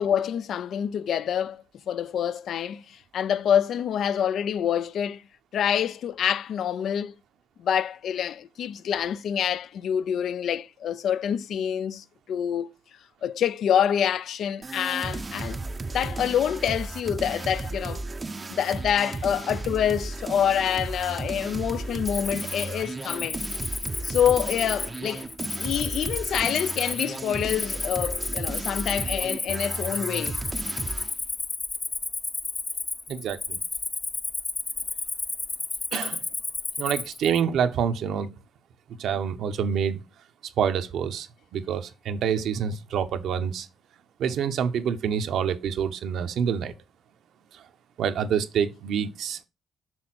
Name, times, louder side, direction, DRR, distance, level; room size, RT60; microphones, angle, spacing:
voice 1, 0.0-5.2 5.5-7.1 7.6-12.7 13.2-15.6 15.9-18.0 18.5-23.4 24.0-25.3 25.6-30.4, left 9 dB, 70° left, 0.4 m, -26 dB
sound 1, 14.6-31.1, right 3 dB, 25° right, 0.5 m, -34 dB
Cricket, 22.0-37.4, left 3 dB, 30° left, 0.7 m, -32 dB
voice 2, 33.1-33.6 35.9-36.2 36.8-38.3 39.0-40.0 40.6-41.3 41.5-43.7 44.2-46.7 48.0-49.4, right 7 dB, 75° right, 0.8 m, -27 dB
6.2 x 3.7 x 6.0 m
cardioid pair, 90°, 0 cm